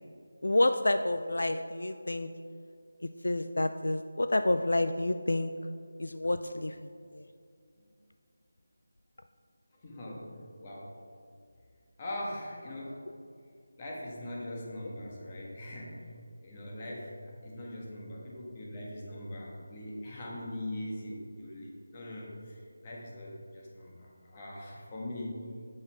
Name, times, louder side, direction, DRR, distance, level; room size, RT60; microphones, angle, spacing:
voice 1, 0.4-2.3 3.2-5.5 6.0-6.9 7.1-7.2, left 2 dB, 75° left, 9 dB, 0.3 m, -29 dB
voice 2, 9.8-11.0 12.0-13.0 13.8-16.1 16.4-17.1 17.4-25.4, left 1 dB, 25° left, -3 dB, 1.4 m, -41 dB
8.0 x 5.4 x 4.5 m, 2.3 s
figure-of-eight pair, 165°, 0 cm